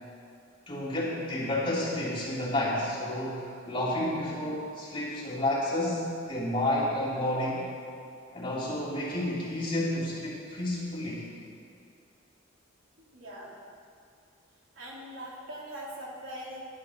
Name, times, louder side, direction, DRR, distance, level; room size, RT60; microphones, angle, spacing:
voice 1, 0.7-7.6 8.3-11.3, left 1 dB, 25° left, -7 dB, 3.2 m, -30 dB
voice 2, 13.1-13.5 14.8-16.6, equal, 80° right, -4 dB, 2.7 m, -41 dB
11.0 x 10.5 x 6.4 m, 2.5 s
head